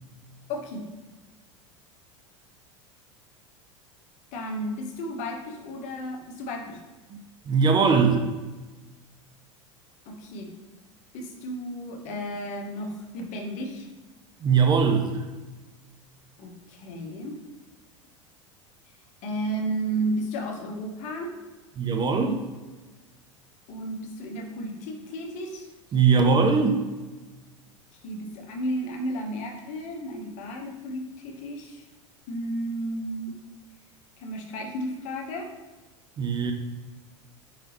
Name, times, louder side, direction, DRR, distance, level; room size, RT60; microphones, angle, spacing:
voice 1, 0.5-0.9 4.3-6.8 10.1-10.5 11.1-13.9 16.4-17.4 19.2-21.3 23.7-25.7 28.0-31.9 32.3-33.4 34.2-35.5, right 1 dB, 50° left, 1 dB, 1.0 m, -33 dB
voice 2, 7.5-8.2 14.4-15.2 21.8-22.4 25.9-26.8 36.2-36.5, right 5 dB, 30° right, 4 dB, 0.6 m, -21 dB
4.8 x 3.5 x 3.0 m, 1.2 s
hypercardioid pair, 85°, 16 cm